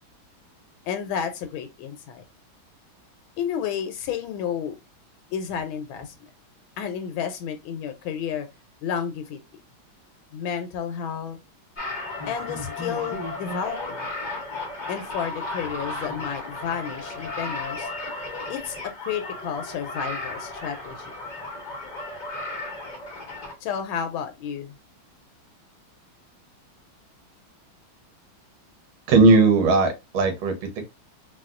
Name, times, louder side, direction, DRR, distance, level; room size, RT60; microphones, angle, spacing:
voice 1, 0.9-2.2 3.4-4.8 5.3-6.1 6.8-8.5 8.8-9.4 10.3-11.4 12.3-14.1 14.9-17.9 18.5-21.1 23.6-24.7, left 8 dB, 80° left, 1.3 m, -31 dB
sound 1, 11.8-23.5, left 2 dB, 55° left, 0.5 m, -34 dB
voice 2, 29.1-30.8, right 3 dB, 80° right, 1.8 m, -18 dB
4.1 x 2.2 x 2.4 m
omnidirectional pair, 2.2 m